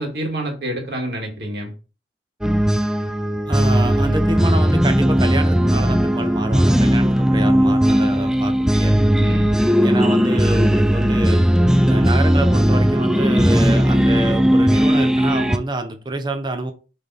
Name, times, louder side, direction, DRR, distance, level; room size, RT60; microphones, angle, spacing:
voice 1, 0.0-1.7 9.2-9.7, right 1 dB, 65° right, 1.9 m, -28 dB
sound 1, 2.4-15.6, equal, 5° right, 0.3 m, -17 dB
voice 2, 3.5-9.0 9.8-11.5 11.8-16.7, right 2 dB, 25° right, 0.7 m, -26 dB
6.7 x 3.4 x 4.1 m
head